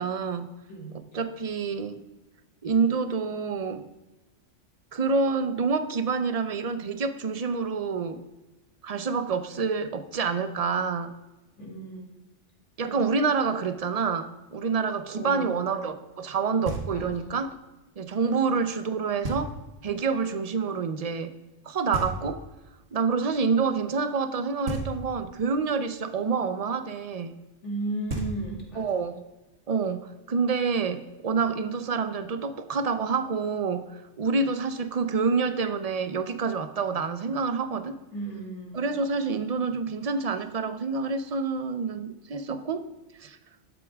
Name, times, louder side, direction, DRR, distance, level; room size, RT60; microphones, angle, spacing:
voice 1, 0.0-0.5 1.1-2.0 2.6-3.8 4.9-8.2 8.8-11.1 12.8-17.5 18.0-19.5 19.8-21.3 21.6-22.4 22.9-27.4 28.8-29.2 29.7-37.9 38.7-42.9 43.2-43.4, right 5 dB, 40° right, 0.7 m, -27 dB
voice 2, 11.6-12.2 12.8-13.0 15.1-15.6 16.9-17.3 18.2-18.3 27.6-28.9 38.1-38.8, right 2 dB, 70° left, 2.8 m, -35 dB
Knock, 16.6-17.3 19.2-19.9 21.9-22.7 24.6-25.4 27.7-27.8 28.1-28.9, right 2 dB, 80° right, 1.9 m, -34 dB
12.5 x 8.3 x 3.5 m
omnidirectional pair, 1.2 m